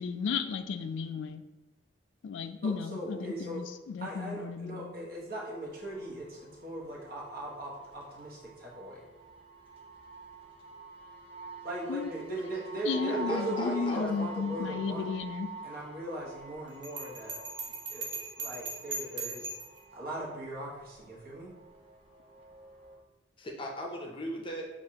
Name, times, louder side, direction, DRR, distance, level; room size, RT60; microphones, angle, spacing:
voice 1, 0.0-1.4 2.2-5.0 11.9-12.1 12.8-15.5, left 5 dB, 75° left, 10 dB, 0.3 m, -34 dB
voice 2, 2.6-3.6 4.0-9.0 11.6-15.1 15.6-17.5 17.9-19.5 19.9-21.5, right 1 dB, 50° right, -3 dB, 1.1 m, -39 dB
sound 1, 5.6-23.0, right 3 dB, 30° right, 0.7 m, -47 dB
voice 3, 13.1-14.1 23.4-24.7, left 1 dB, 25° left, 1 dB, 0.6 m, -37 dB
Bell, 16.8-19.8, right 3 dB, 65° right, 0.8 m, -39 dB
6.7 x 2.5 x 2.8 m, 1.1 s
head